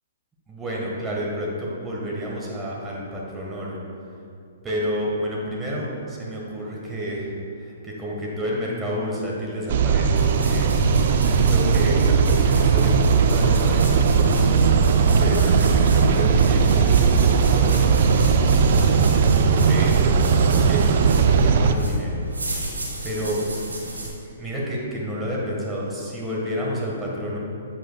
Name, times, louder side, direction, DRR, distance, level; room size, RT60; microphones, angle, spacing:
voice 1, 0.5-3.8 4.6-22.2 23.0-23.4 23.7-23.8 24.2-27.4, equal, 15° right, -4 dB, 1.5 m, -30 dB
sound 1, 9.7-21.7, right 5 dB, 55° right, 0.4 m, -18 dB
sound 2, 10.1-24.1, right 1 dB, 90° right, 1.6 m, -32 dB
7.9 x 7.4 x 2.3 m, 2.5 s
hypercardioid pair, 125°, 0 cm